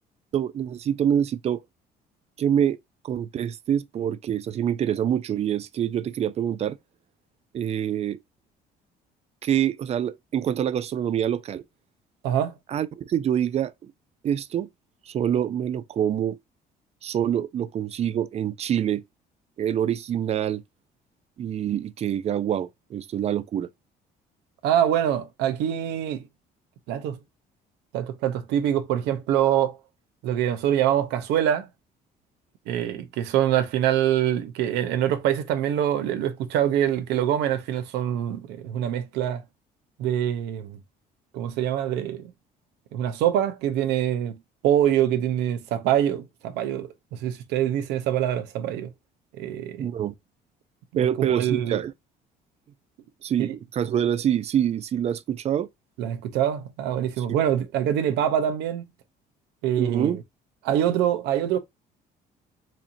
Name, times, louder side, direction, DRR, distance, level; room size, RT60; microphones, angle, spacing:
voice 1, 0.3-1.6 2.4-2.8 3.0-6.8 7.5-8.2 9.4-11.6 12.7-13.9 14.2-14.7 15.1-16.4 17.0-19.0 19.6-20.6 21.4-23.7 49.8-50.1 51.0-51.9 53.2-55.7 57.2-57.3 59.8-60.2, right 9 dB, 40° right, 0.4 m, -26 dB
voice 2, 12.2-12.5 24.6-26.2 26.9-27.2 27.9-29.8 30.2-31.7 32.7-39.4 40.0-40.8 41.3-42.3 42.9-44.4 44.6-48.9 49.3-49.9 50.9-51.8 53.4-53.5 56.0-58.9 59.6-60.2 60.6-61.6, right 10 dB, 90° right, 0.7 m, -24 dB
4.2 x 2.8 x 2.5 m
cardioid pair, 110°, 17 cm